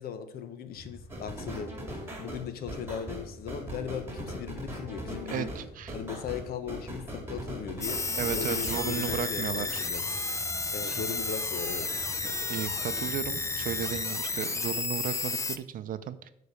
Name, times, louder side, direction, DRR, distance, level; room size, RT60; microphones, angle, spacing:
voice 1, 0.0-5.5 5.9-10.0 10.7-11.9, left 8 dB, 65° left, 10 dB, 0.9 m, -38 dB
sound 1, 0.7-14.0, left 1 dB, 80° left, 2.0 m, -48 dB
sound 2, 1.1-9.3, equal, 15° right, 2.3 m, -39 dB
voice 2, 5.3-5.9 8.2-9.8 10.8-11.0 12.2-16.3, right 10 dB, 55° right, 13 dB, 0.6 m, -35 dB
sound 3, 7.8-15.6, left 3 dB, 20° left, 0.5 m, -32 dB
6.8 x 4.2 x 6.7 m, 0.77 s
cardioid pair, 110°, 17 cm